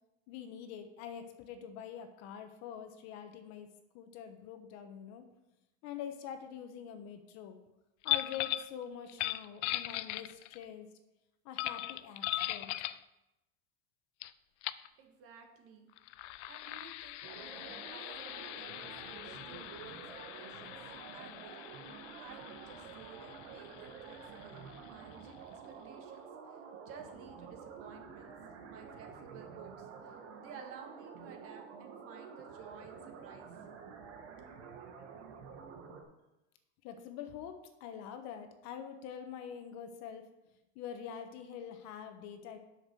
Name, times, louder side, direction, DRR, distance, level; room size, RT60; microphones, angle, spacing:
voice 1, 0.3-5.2 5.8-7.6 8.0-10.9 11.4-12.7 36.8-40.3 40.7-42.6, left 8 dB, 50° left, 7 dB, 1.1 m, -45 dB
sound 1, 8.0-8.7 9.1-10.6 11.6-13.0 14.2-14.3 14.6-14.9 15.9-25.2, left 16 dB, 80° left, 0.5 m, -40 dB
voice 2, 15.0-15.9 16.5-20.7 21.1-21.7 22.2-28.3 28.7-33.5, right 6 dB, 40° right, 3 dB, 1.7 m, -54 dB
sound 2, 17.2-36.0, right 6 dB, 85° right, 1.8 m, -49 dB
7.7 x 6.6 x 6.2 m, 0.95 s
supercardioid pair, 150°, 35 cm